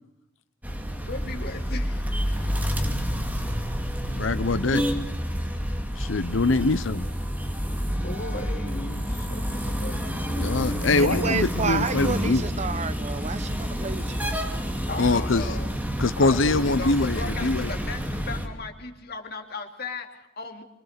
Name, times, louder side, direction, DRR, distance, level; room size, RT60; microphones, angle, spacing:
sound 1, 0.6-18.5, equal, 10° right, 2.5 m, -29 dB
voice 1, 1.0-2.1 8.0-10.0 14.9-15.8 16.2-20.6, left 3 dB, 55° left, 3.0 m, -37 dB
voice 2, 4.1-4.8 6.0-7.1 10.4-12.4 15.0-15.5 16.0-17.7, left 3 dB, 85° left, 0.9 m, -23 dB
voice 3, 11.0-14.3, right 4 dB, 35° right, 0.8 m, -30 dB
25.0 x 22.5 x 6.8 m
head